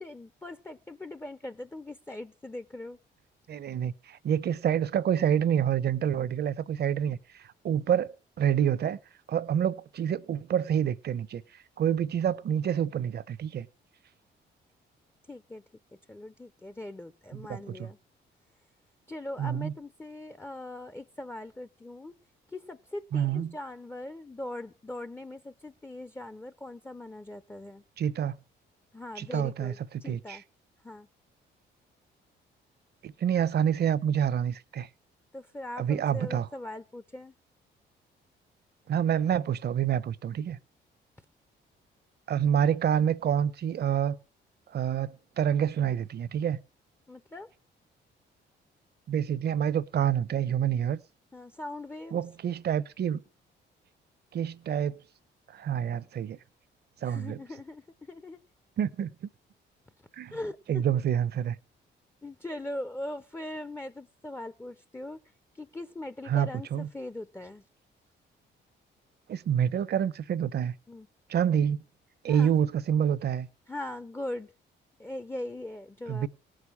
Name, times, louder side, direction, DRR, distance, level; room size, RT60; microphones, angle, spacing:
voice 1, 0.0-3.0 15.3-15.6 16.1-18.0 19.1-22.1 22.5-27.8 28.9-30.4 30.8-31.1 35.3-37.3 47.1-47.5 51.3-52.2 57.0-58.4 60.3-60.8 62.2-65.2 65.6-67.6 70.9-71.1 72.3-72.5 73.7-74.5 75.0-76.3, left 1 dB, 10° left, 0.6 m, -40 dB
voice 2, 3.5-9.0 9.3-11.4 11.8-13.7 17.3-17.9 19.4-19.7 23.1-23.5 28.0-28.3 29.2-30.4 33.0-34.9 35.8-36.5 38.9-40.6 42.3-44.2 44.7-46.6 49.1-51.0 52.1-53.2 54.3-55.0 55.5-56.4 57.0-57.4 58.8-59.1 60.1-60.4 60.7-61.6 66.3-66.9 69.3-70.7 71.3-71.8 72.2-73.5 76.1-76.3, right 9 dB, 55° right, 0.8 m, -27 dB
18.0 x 6.4 x 8.4 m
cardioid pair, 90°, 20 cm